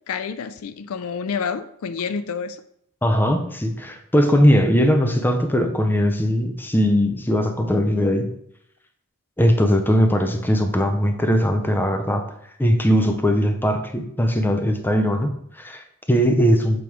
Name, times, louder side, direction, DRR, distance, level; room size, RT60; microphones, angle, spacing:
voice 1, 0.1-2.6, left 6 dB, 75° left, 12 dB, 0.4 m, -28 dB
voice 2, 3.0-8.3 9.4-12.2 12.6-16.8, equal, 10° left, 6 dB, 0.5 m, -20 dB
7.2 x 3.0 x 4.7 m, 0.69 s
head